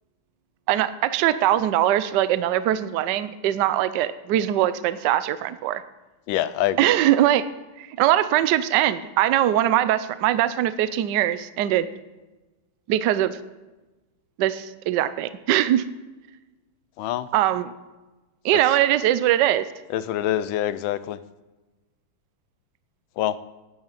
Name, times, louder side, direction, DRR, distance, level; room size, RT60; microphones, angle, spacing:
voice 1, 0.7-5.8 6.8-7.4 7.8-11.9 12.9-13.4 14.4-15.8 17.3-17.7 18.4-19.6, right 12 dB, 70° right, 14 dB, 1.1 m, -21 dB
voice 2, 6.3-6.9 17.0-17.3 19.9-21.2 23.2-23.4, left 12 dB, 75° left, 15 dB, 1.3 m, -25 dB
9.6 x 8.8 x 8.9 m, 1.2 s
omnidirectional pair, 2.4 m